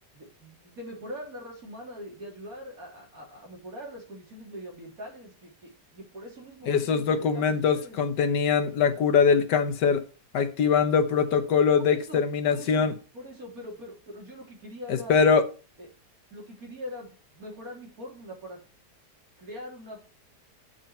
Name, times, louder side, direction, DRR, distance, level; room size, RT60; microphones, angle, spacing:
voice 1, 0.1-8.0 11.8-12.9 13.1-15.1 15.8-15.9 16.3-18.6 19.4-20.0, equal, 55° right, 4.0 m, -42 dB
voice 2, 6.7-10.0 10.3-12.9 14.9-15.4, left 6 dB, 90° left, 1.7 m, -22 dB
9.0 x 7.1 x 4.4 m
omnidirectional pair, 1.8 m